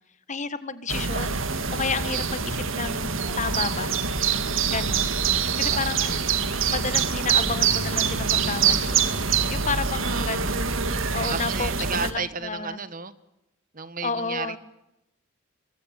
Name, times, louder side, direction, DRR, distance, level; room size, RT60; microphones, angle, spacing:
voice 1, 0.3-4.0 4.7-5.1 5.6-6.1 6.5-9.1 9.5-10.8 11.1-12.8 14.0-14.6, left 4 dB, 35° left, 13 dB, 1.7 m, -31 dB
sound 1, 0.9-12.1, right 6 dB, 70° right, 2.2 m, -25 dB
sound 2, 2.7-4.5, right 2 dB, 90° right, 7.9 m, -46 dB
voice 2, 5.3-5.8 9.9-10.6 11.3-13.1 13.7-14.6, right 5 dB, 40° right, 14 dB, 1.4 m, -34 dB
sound 3, 7.3-11.0, left 2 dB, 80° left, 2.4 m, -41 dB
24.5 x 23.0 x 9.0 m, 0.88 s
head